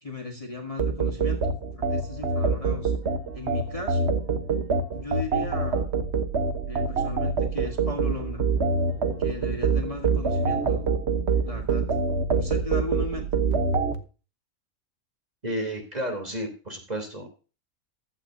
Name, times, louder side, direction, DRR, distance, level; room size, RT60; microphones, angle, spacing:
voice 1, 0.0-2.9 3.3-4.1 4.9-5.9 6.6-8.4 9.2-10.9 11.4-11.8 12.3-13.4, left 3 dB, 25° left, 2 dB, 1.6 m, -36 dB
sound 1, 0.8-14.0, right 4 dB, 50° right, 1.4 m, -25 dB
sound 2, 1.8-13.5, right 9 dB, 85° right, 3.9 m, -40 dB
voice 2, 15.4-17.3, equal, 30° right, 3 dB, 3.5 m, -32 dB
15.5 x 11.5 x 2.8 m, 0.34 s
omnidirectional pair, 1.5 m